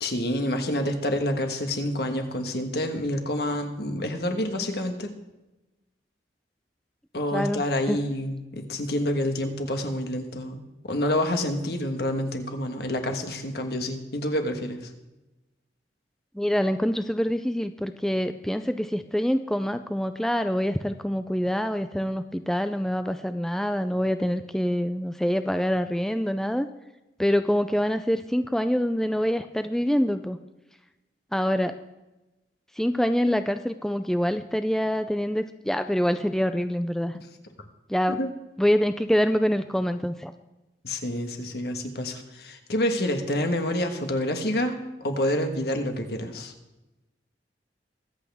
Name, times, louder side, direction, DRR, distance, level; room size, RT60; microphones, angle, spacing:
voice 1, 0.0-5.1 7.1-14.9 38.1-38.3 40.8-46.5, left 1 dB, 65° left, 5 dB, 1.4 m, -28 dB
voice 2, 7.3-8.0 16.3-26.7 27.2-30.4 31.3-31.8 32.8-37.2 37.9-38.2 38.6-40.3, equal, 5° left, 9 dB, 0.3 m, -25 dB
23.0 x 8.3 x 3.5 m, 1.0 s
head